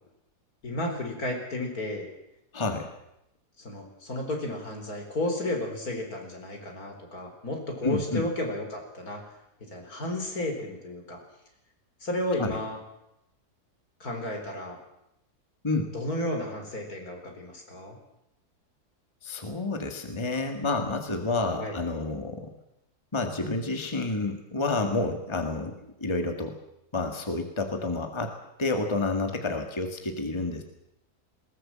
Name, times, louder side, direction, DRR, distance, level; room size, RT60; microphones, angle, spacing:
voice 1, 0.6-2.1 3.6-9.2 9.6-11.2 12.0-12.8 14.0-14.8 15.9-18.0 21.6-21.8, left 1 dB, 65° left, 3 dB, 4.6 m, -33 dB
voice 2, 2.5-2.9 7.8-8.3 12.4-12.6 15.6-15.9 19.2-22.5 23.1-26.6 26.9-30.6, left 2 dB, 15° left, 5 dB, 1.9 m, -29 dB
20.5 x 18.5 x 7.5 m, 0.83 s
omnidirectional pair, 1.7 m